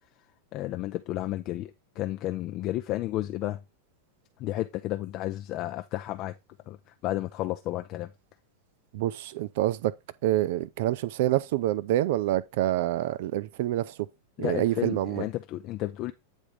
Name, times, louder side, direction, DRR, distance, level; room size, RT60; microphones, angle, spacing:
voice 1, 0.5-3.6 4.4-6.3 6.7-6.8 7.0-8.1 14.4-16.1, left 15 dB, 40° left, 0.5 m, -32 dB
voice 2, 8.9-9.9 10.2-13.9 14.4-15.2, right 14 dB, 50° right, 0.4 m, -27 dB
9.0 x 3.6 x 4.8 m
figure-of-eight pair, 90°, 0 cm